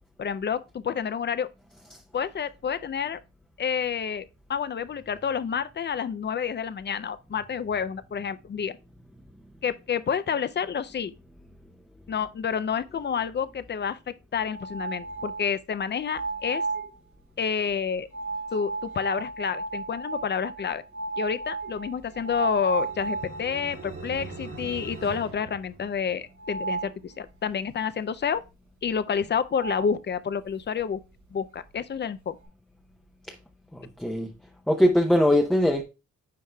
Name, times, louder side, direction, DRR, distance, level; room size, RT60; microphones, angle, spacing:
voice 1, 0.2-1.5 2.1-3.2 3.6-8.8 9.6-11.1 12.1-16.6 17.4-18.1 18.5-20.8 21.2-28.4 28.8-31.0 31.3-32.4, left 7 dB, 35° left, 0.4 m, -29 dB
sound 1, 14.4-15.5 16.0-16.9 18.1-23.7 24.2-24.3 24.7-24.8 26.4-26.9 29.2-29.3 29.5-29.9, right 3 dB, 75° right, 2.7 m, -33 dB
sound 2, 21.9-26.5, right 3 dB, 45° right, 1.7 m, -42 dB
voice 2, 33.7-34.3 34.7-35.8, left 1 dB, ahead, 0.7 m, -21 dB
9.2 x 4.7 x 2.2 m
cardioid pair, 95°, 30 cm